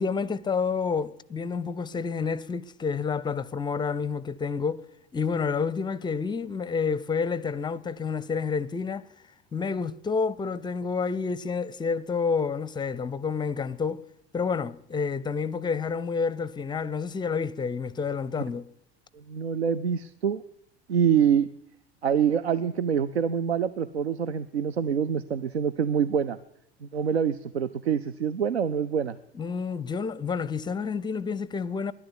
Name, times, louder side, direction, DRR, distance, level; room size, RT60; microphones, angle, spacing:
voice 1, 0.0-4.9 5.1-9.0 9.5-14.0 14.3-18.7 29.3-31.9, left 5 dB, 15° left, 0.6 m, -29 dB
voice 2, 19.1-20.4 20.9-21.5 22.0-26.4 26.8-29.2, right 8 dB, 75° right, 0.6 m, -25 dB
11.5 x 11.0 x 9.7 m
figure-of-eight pair, 75°, 32 cm